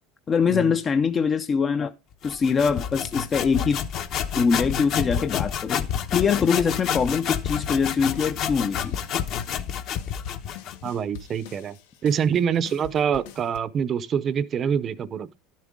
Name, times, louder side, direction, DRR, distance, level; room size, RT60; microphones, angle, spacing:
voice 1, 0.3-1.9 2.2-3.8 4.3-8.9, left 6 dB, 25° left, 0.4 m, -23 dB
sound 1, 2.2-10.8, left 9 dB, 45° left, 0.9 m, -29 dB
sound 2, 6.2-13.6, left 8 dB, 85° left, 1.2 m, -45 dB
voice 2, 10.8-11.8 12.0-15.4, right 7 dB, 30° right, 0.6 m, -25 dB
12.0 x 7.3 x 3.6 m
cardioid pair, 155°, 0 cm